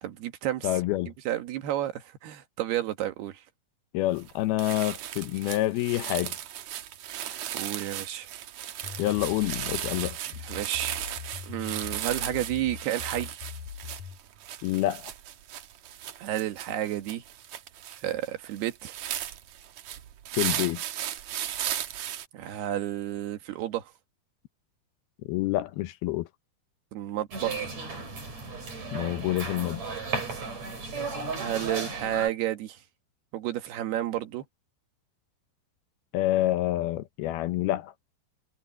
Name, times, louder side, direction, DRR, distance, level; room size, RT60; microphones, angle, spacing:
voice 1, 0.0-0.7 1.3-3.4 7.2-8.3 8.8-9.0 10.4-11.0 11.4-13.4 16.2-17.2 18.0-18.9 22.3-23.9 26.9-27.7 31.4-32.8 33.3-34.4, right 13 dB, 90° right, 3.6 m, -31 dB
voice 2, 0.6-1.1 3.9-6.3 9.0-10.2 14.6-15.1 20.4-20.8 25.3-26.3 28.9-30.0 36.1-37.9, left 15 dB, 80° left, 2.7 m, -27 dB
sound 1, 4.2-4.3 4.6-22.3, right 11 dB, 65° right, 1.9 m, -36 dB
sound 2, 8.8-14.2, left 7 dB, 60° left, 3.1 m, -41 dB
sound 3, 27.3-32.3, right 4 dB, 45° right, 7.5 m, -34 dB
omnidirectional pair, 4.5 m